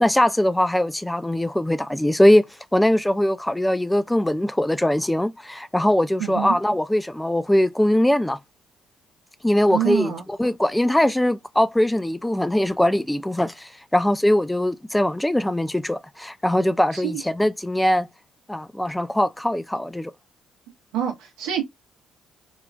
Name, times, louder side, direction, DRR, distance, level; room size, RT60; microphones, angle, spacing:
voice 1, 0.0-2.4 2.7-8.4 9.4-18.1 18.5-20.1, left 1 dB, 10° left, 0.3 m, -21 dB
voice 2, 9.7-10.2 16.9-17.2 20.9-21.6, right 10 dB, 75° right, 0.6 m, -26 dB
3.0 x 2.3 x 2.3 m
hypercardioid pair, 45°, 0 cm